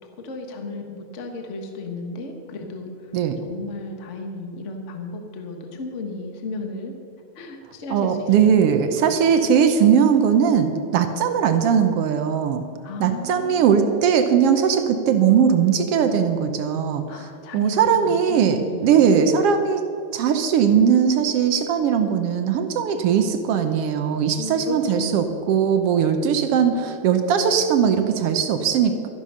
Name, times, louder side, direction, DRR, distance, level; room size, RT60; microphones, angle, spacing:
voice 1, 0.0-6.9 7.3-8.3 9.1-9.2 12.8-14.0 17.1-19.2 24.4-25.4, left 2 dB, 40° left, 4 dB, 1.0 m, -34 dB
voice 2, 7.9-12.6 13.0-17.3 17.5-19.8 20.1-29.1, right 7 dB, 70° right, 7 dB, 1.5 m, -19 dB
13.0 x 11.0 x 5.6 m, 2.5 s
omnidirectional pair, 3.3 m